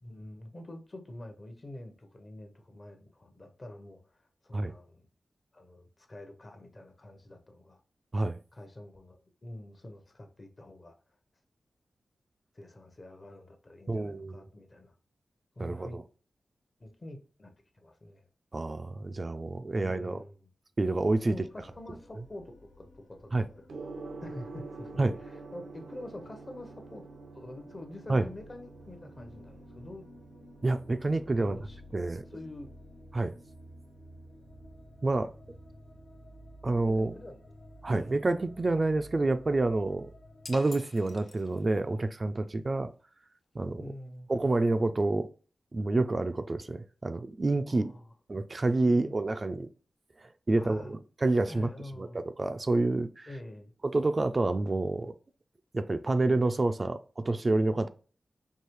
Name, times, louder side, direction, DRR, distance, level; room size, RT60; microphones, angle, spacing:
voice 1, 0.0-5.1 5.5-7.8 8.5-11.0 12.5-14.9 15.6-16.0 16.8-18.2 19.7-20.4 21.3-23.7 24.2-27.1 27.3-30.1 31.4-31.8 32.3-32.8 36.9-37.5 37.9-38.2 43.8-44.3 47.7-48.1 48.8-49.2 50.6-50.9 51.5-52.2 53.3-53.7, left 1 dB, 40° left, 0.8 m, -46 dB
voice 2, 13.9-14.5 15.6-15.9 18.5-20.2 20.8-21.4 23.3-23.5 25.0-25.1 28.1-28.2 30.6-31.6 31.9-32.2 33.1-33.4 35.0-35.3 36.6-37.1 37.8-40.1 40.5-42.9 43.6-43.8 44.3-45.3 45.7-47.9 48.3-49.7 50.2-51.7 52.0-52.1 52.4-53.3 53.8-55.1 55.7-57.9, right 2 dB, 40° right, 0.3 m, -28 dB
sound 1, 20.9-40.6, left 1 dB, 80° left, 0.9 m, -53 dB
Gong, 23.7-42.7, right 3 dB, 90° right, 0.5 m, -50 dB
sound 2, 40.4-41.9, left 3 dB, 55° left, 0.3 m, -48 dB
4.7 x 2.7 x 3.0 m
wide cardioid pair, 75°, 0 cm